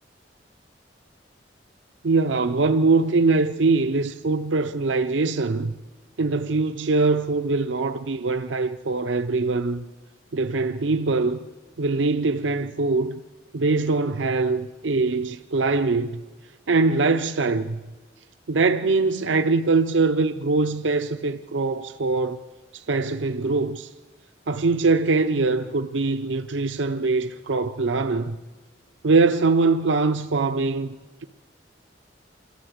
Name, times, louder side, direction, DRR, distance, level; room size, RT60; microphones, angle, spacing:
voice 1, 2.0-5.7 6.2-9.8 10.3-11.4 11.8-13.2 13.5-16.2 16.7-17.8 18.5-22.4 22.7-23.9 24.5-28.4 29.0-31.0, right 3 dB, 85° right, 0.6 m, -22 dB
28.0 x 12.5 x 8.0 m
head